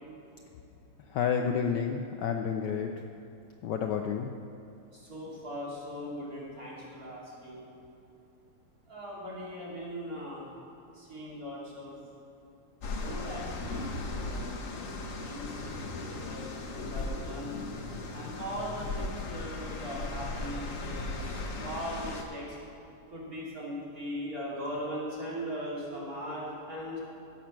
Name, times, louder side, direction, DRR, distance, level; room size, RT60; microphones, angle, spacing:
voice 1, 1.1-2.9 3.6-4.3, left 7 dB, 70° left, 4 dB, 1.1 m, -30 dB
voice 2, 4.9-7.7 8.9-10.4 10.9-11.9 12.9-15.5 16.2-17.6 18.1-22.6 23.1-27.0, equal, 40° right, -6 dB, 3.1 m, -39 dB
sound 1, 12.8-22.2, left 2 dB, 50° left, 1.1 m, -37 dB
16.0 x 7.4 x 5.9 m, 2.8 s
omnidirectional pair, 2.4 m